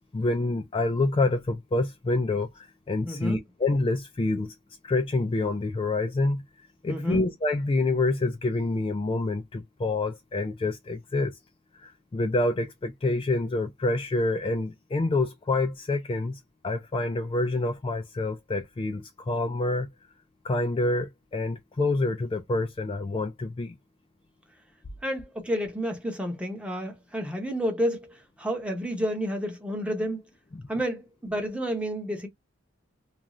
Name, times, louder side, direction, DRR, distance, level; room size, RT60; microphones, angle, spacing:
voice 1, 0.1-4.5 4.8-6.4 6.8-11.3 11.7-19.9 20.4-23.8 30.5-30.6, left 2 dB, 25° left, 0.3 m, -27 dB
voice 2, 3.0-3.4 6.9-7.2 25.0-30.2 30.7-32.3, equal, 5° right, 0.7 m, -30 dB
2.5 x 2.3 x 2.9 m
head